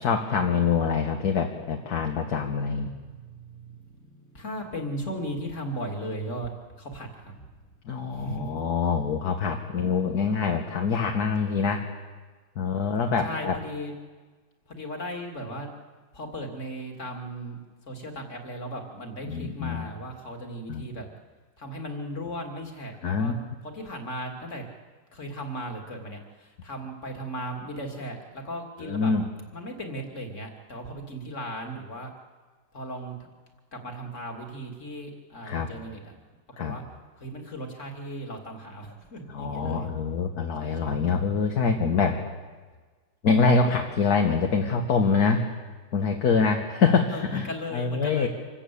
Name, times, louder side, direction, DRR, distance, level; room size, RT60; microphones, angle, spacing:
voice 1, 0.0-2.9 7.9-11.9 12.6-13.5 19.3-19.9 20.7-20.8 23.0-23.3 28.8-29.2 35.4-35.7 36.6-36.8 39.3-42.2 43.2-45.5 45.9-47.5 47.7-48.3, left 5 dB, 55° left, 3 dB, 1.9 m, -25 dB
voice 2, 2.9-7.4 8.1-8.6 13.2-13.9 14.7-15.7 16.1-17.6 17.9-21.1 21.6-23.3 23.6-24.6 25.1-29.1 29.5-32.1 32.7-33.2 33.7-36.1 36.6-36.8 37.2-39.9 40.6-41.0 47.1-48.3, equal, 40° left, 2 dB, 2.9 m, -37 dB
26.5 x 14.0 x 8.5 m, 1.4 s
omnidirectional pair, 2.0 m